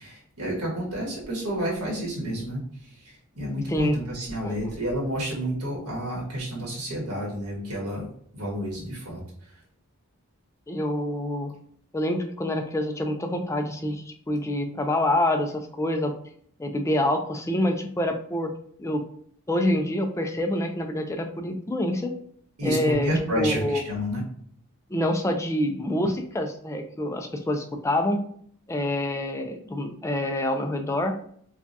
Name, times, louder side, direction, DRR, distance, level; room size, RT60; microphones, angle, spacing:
voice 1, 0.0-8.1 8.3-9.2 22.6-24.2, equal, 90° right, -3 dB, 1.4 m, -30 dB
voice 2, 10.7-11.5 11.9-16.1 16.6-18.5 18.8-19.0 19.5-22.1 22.6-23.8 24.9-28.2 28.7-31.2, left 1 dB, 15° left, 4 dB, 0.3 m, -26 dB
4.8 x 2.3 x 2.6 m, 0.62 s
head